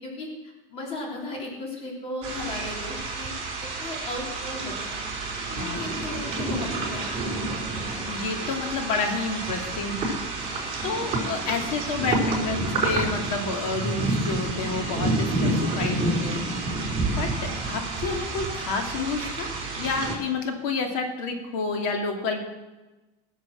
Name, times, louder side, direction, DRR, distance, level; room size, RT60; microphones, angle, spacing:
voice 1, 0.0-3.3 3.6-5.1 5.5-7.4, left 2 dB, 35° left, -2 dB, 3.6 m, -36 dB
sound 1, 2.2-20.2, right 2 dB, 30° right, 5.2 m, -29 dB
voice 2, 5.5-5.9 8.1-10.5 10.8-16.5 17.2-19.5 19.8-22.4, left 4 dB, 85° left, 3 dB, 2.7 m, -29 dB
20.0 x 7.4 x 6.5 m, 1.1 s
cardioid pair, 165°, 18 cm